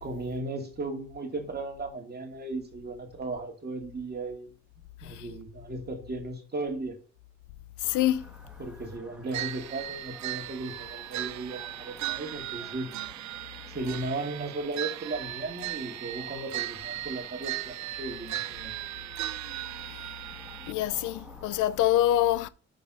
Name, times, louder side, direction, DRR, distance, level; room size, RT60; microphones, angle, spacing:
voice 1, 0.0-4.5 5.0-7.0 8.6-12.9 13.7-18.7, right 2 dB, 35° right, 2.2 m, -36 dB
voice 2, 7.8-8.3 19.8-20.1 20.7-22.5, left 13 dB, 85° left, 0.5 m, -26 dB
sound 1, 7.8-21.8, equal, 5° right, 2.0 m, -52 dB
sound 2, 9.3-20.7, right 15 dB, 65° right, 0.4 m, -37 dB
6.6 x 5.3 x 5.0 m
cardioid pair, 90°, 30 cm